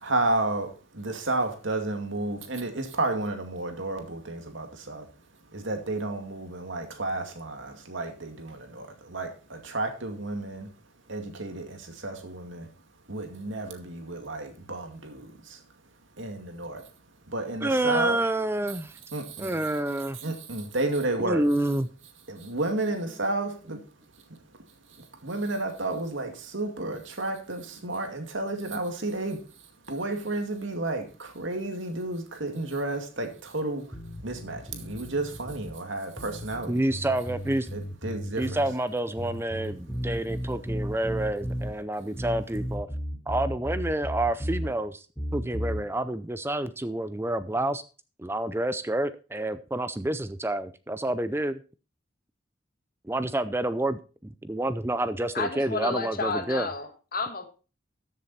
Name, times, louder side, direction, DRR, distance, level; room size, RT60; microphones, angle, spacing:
voice 1, 0.0-5.1 5.5-10.7 11.1-12.7 13.1-15.6 16.2-16.8 17.3-18.2 19.1-19.6 20.2-21.4 22.3-23.8 24.3-24.4 25.2-29.4 29.9-33.9 34.2-36.8 37.7-38.6, right 2 dB, 70° right, 2.3 m, -31 dB
voice 2, 17.6-18.9 19.4-20.2 21.2-21.9 36.7-37.7 38.4-42.9 43.3-45.0 45.3-47.8 48.2-51.6 53.0-56.7, right 1 dB, 10° right, 0.5 m, -28 dB
sound 1, 33.9-35.7 36.2-38.8 39.2-41.7 42.2-44.7 45.2-45.8, equal, 10° left, 2.9 m, -34 dB
voice 3, 55.3-57.5, left 3 dB, 45° left, 1.7 m, -31 dB
14.0 x 7.4 x 4.2 m
head